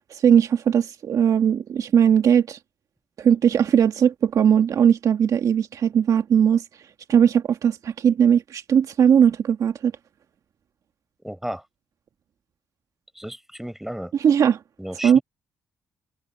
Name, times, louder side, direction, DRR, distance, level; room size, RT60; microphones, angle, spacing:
voice 1, 0.1-2.6 3.2-6.6 7.1-9.9 14.2-14.6 15.0-15.2, right 8 dB, 65° right, 1.7 m, -19 dB
voice 2, 11.2-11.7 13.1-14.1 14.8-15.2, right 1 dB, 5° right, 6.4 m, -33 dB
cardioid pair, 70°, 6 cm